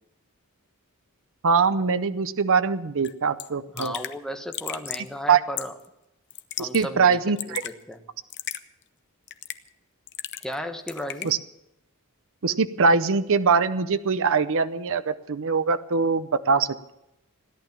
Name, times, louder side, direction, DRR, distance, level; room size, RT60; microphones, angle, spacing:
voice 1, 1.4-3.9 5.3-5.4 6.6-7.6 11.2-11.4 12.4-16.9, right 5 dB, 60° right, 12 dB, 0.7 m, -22 dB
Raindrop / Drip, 3.0-3.1 3.4-3.5 3.8-4.2 4.5-5.1 5.6-5.9 6.3-6.9 7.1-7.7 8.3-8.6 9.3-9.7 10.1-10.6 10.9-11.3, left 12 dB, 55° left, 0.8 m, -34 dB
voice 2, 3.7-5.7 6.6-8.0 10.4-11.3, equal, 5° left, 5 dB, 1.1 m, -35 dB
16.5 x 11.5 x 7.3 m, 0.87 s
head